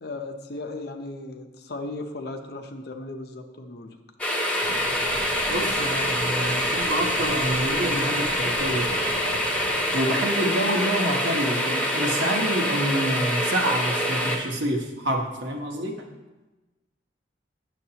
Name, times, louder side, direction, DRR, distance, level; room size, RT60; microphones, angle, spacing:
voice 1, 0.0-4.0, left 2 dB, 60° left, 6 dB, 0.7 m, -36 dB
sound 1, 4.2-14.4, equal, 5° left, 0.8 m, -25 dB
sound 2, 4.6-10.1, right 2 dB, 35° right, 0.5 m, -41 dB
voice 2, 5.5-8.9 9.9-16.0, right 1 dB, 80° right, 2 dB, 1.1 m, -27 dB
9.2 x 7.2 x 2.9 m, 1.1 s
head